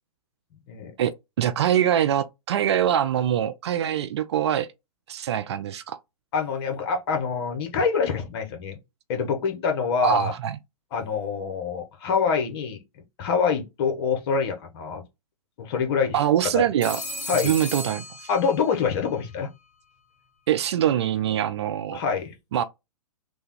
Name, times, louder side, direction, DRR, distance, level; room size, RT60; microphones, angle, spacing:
voice 1, 1.4-4.7 5.1-6.0 10.0-10.6 16.1-17.0 17.4-18.0 20.5-22.0 22.5-22.6, right 10 dB, 45° right, 0.4 m, -23 dB
voice 2, 6.3-8.8 9.1-10.3 10.9-12.8 13.2-15.0 15.6-16.2 16.5-16.6 17.3-17.6 18.3-19.5 21.9-22.3, left 5 dB, 40° left, 1.0 m, -25 dB
Telephone, 16.8-18.9, equal, 10° left, 2.0 m, -35 dB
3.3 x 2.2 x 3.1 m
figure-of-eight pair, 120°, 20 cm